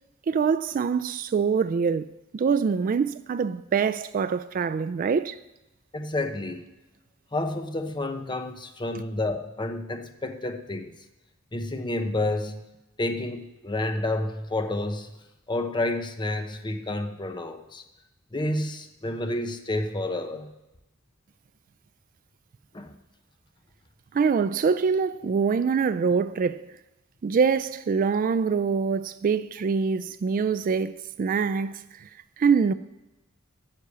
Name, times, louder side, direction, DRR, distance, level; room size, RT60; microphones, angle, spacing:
voice 1, 0.3-5.4 24.1-26.7 27.2-32.1 32.4-32.7, right 5 dB, 40° right, 0.3 m, -24 dB
voice 2, 5.9-6.7 7.3-10.9 11.5-12.7 13.0-15.1 15.5-17.8 18.3-20.5 22.7-22.9, left 2 dB, 20° left, 0.8 m, -30 dB
9.7 x 6.8 x 8.4 m
head